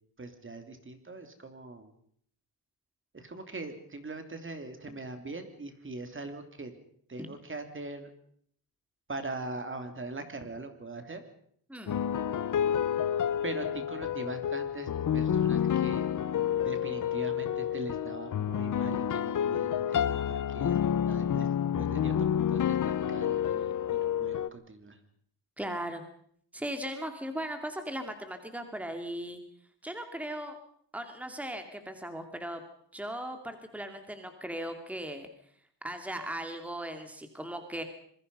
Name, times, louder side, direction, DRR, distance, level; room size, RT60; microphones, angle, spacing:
voice 1, 0.2-1.9 3.1-6.7 7.1-8.1 9.1-11.2 13.4-16.1 16.6-20.8 21.1-25.0, right 2 dB, 30° right, 7 dB, 3.1 m, -41 dB
voice 2, 11.7-12.0 25.6-26.0 26.5-29.4 29.8-30.6 30.9-32.6 32.9-35.3 35.8-37.8, right 1 dB, 5° right, 6 dB, 2.6 m, -38 dB
Short melancholic theme on piano, 11.9-24.5, left 9 dB, 50° left, 0.9 m, -29 dB
26.5 x 22.0 x 5.5 m, 0.63 s
cardioid pair, 110°, 40 cm